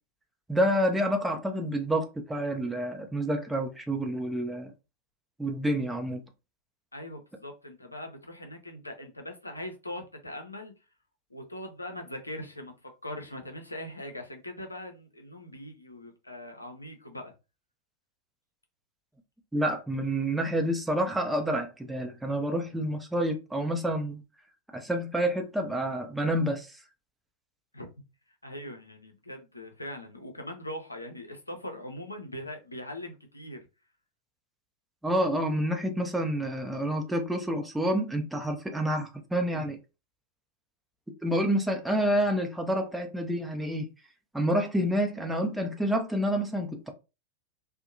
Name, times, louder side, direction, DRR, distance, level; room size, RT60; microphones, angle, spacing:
voice 1, 0.5-4.7 5.4-6.2 19.5-24.2 24.7-26.7 35.0-39.8 41.2-43.9 44.3-46.9, equal, 5° right, 0.5 m, -28 dB
voice 2, 6.9-10.7 11.3-17.3 27.7-27.9 28.4-33.7, left 1 dB, 85° left, 0.6 m, -41 dB
2.6 x 2.1 x 2.5 m
figure-of-eight pair, 90°, 0 cm